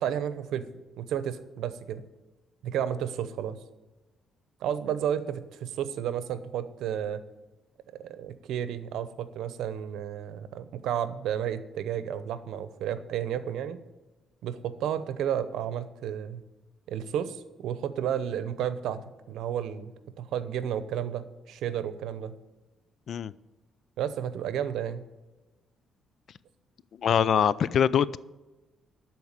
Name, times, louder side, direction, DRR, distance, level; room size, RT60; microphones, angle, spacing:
voice 1, 0.0-2.0 2.6-3.6 4.6-7.2 7.9-13.8 14.4-16.4 16.9-19.0 19.3-22.3 24.0-25.1, right 9 dB, 80° right, 13 dB, 0.7 m, -32 dB
voice 2, 27.0-28.2, left 8 dB, 60° left, 19 dB, 0.4 m, -23 dB
12.5 x 4.6 x 8.1 m, 1.1 s
cardioid pair, 90°, 0 cm